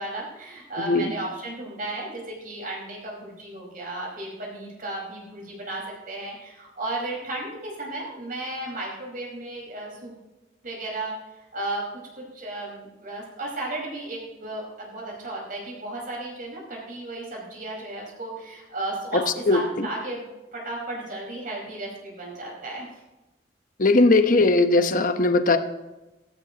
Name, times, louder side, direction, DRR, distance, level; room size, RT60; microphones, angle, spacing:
voice 1, 0.0-10.1 10.6-11.2 11.5-11.9 12.1-19.2 19.5-22.9, right 2 dB, 50° right, -2 dB, 4.9 m, -34 dB
voice 2, 0.8-1.1 19.1-19.9 23.8-25.6, left 2 dB, 50° left, 8 dB, 1.0 m, -19 dB
17.0 x 15.5 x 3.0 m, 1.0 s
head